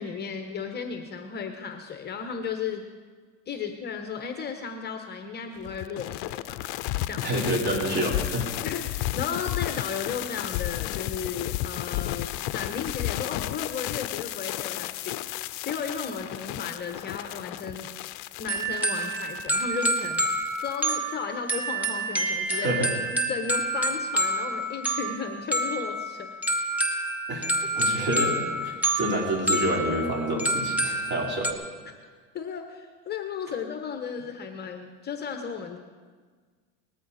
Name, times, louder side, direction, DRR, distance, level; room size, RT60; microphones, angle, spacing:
voice 1, 0.0-2.8 3.5-7.3 8.6-17.9 18.4-20.3 20.6-26.3 31.9-32.0 32.3-35.8, left 6 dB, 30° left, 5 dB, 1.2 m, -35 dB
sound 1, 5.6-20.9, left 16 dB, 55° left, 0.6 m, -33 dB
voice 2, 7.2-8.5 22.5-22.9 27.3-31.5, right 1 dB, 30° right, -1 dB, 4.0 m, -28 dB
sound 2, 18.5-31.5, right 1 dB, 5° right, 1.5 m, -28 dB
19.5 x 14.0 x 4.2 m, 1.5 s
supercardioid pair, 130°, 35 cm